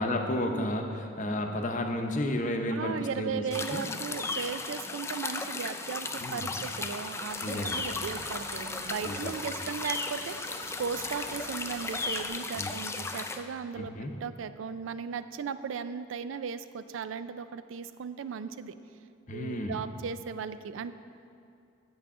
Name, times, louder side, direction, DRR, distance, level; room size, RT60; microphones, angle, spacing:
voice 1, 0.0-3.4 3.7-3.9 6.2-6.6 7.4-7.8 9.0-9.3 12.6-12.7 13.8-14.1 19.3-19.7, left 1 dB, 40° left, 4 dB, 0.7 m, -32 dB
voice 2, 2.7-13.9 14.2-18.7 19.3-20.9, right 6 dB, 85° right, 13 dB, 0.4 m, -37 dB
sound 1, 3.5-13.4, left 3 dB, 15° left, 0.3 m, -35 dB
sound 2, 7.3-12.3, right 3 dB, 50° right, 0.7 m, -47 dB
8.7 x 8.4 x 3.7 m, 2.5 s
head